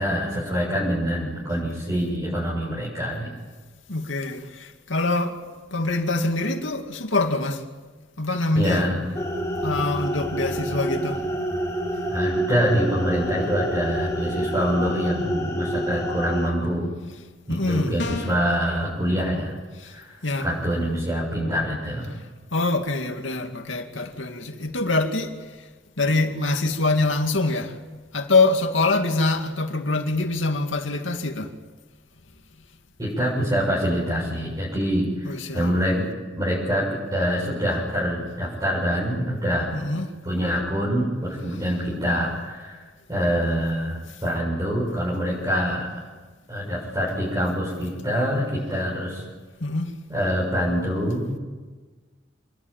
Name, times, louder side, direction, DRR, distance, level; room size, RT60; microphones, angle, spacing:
voice 1, 0.0-3.3 8.5-9.0 12.1-16.9 17.5-19.6 19.8-22.1 33.0-36.0 36.4-39.8 40.2-42.8 43.1-45.9 46.5-49.2 50.1-51.4, equal, 20° right, 7.5 m, -25 dB
voice 2, 3.9-5.4 5.7-7.6 8.2-8.9 9.6-11.2 17.5-17.9 19.8-19.9 20.2-20.5 22.5-25.3 26.0-27.7 28.1-31.5 35.2-35.7 39.7-40.1 49.6-49.9, left 2 dB, 85° left, 2.4 m, -24 dB
sound 1, 9.1-16.5, right 1 dB, 15° left, 4.4 m, -28 dB
sound 2, 18.0-18.5, left 3 dB, 65° left, 2.9 m, -31 dB
27.0 x 21.0 x 9.1 m
head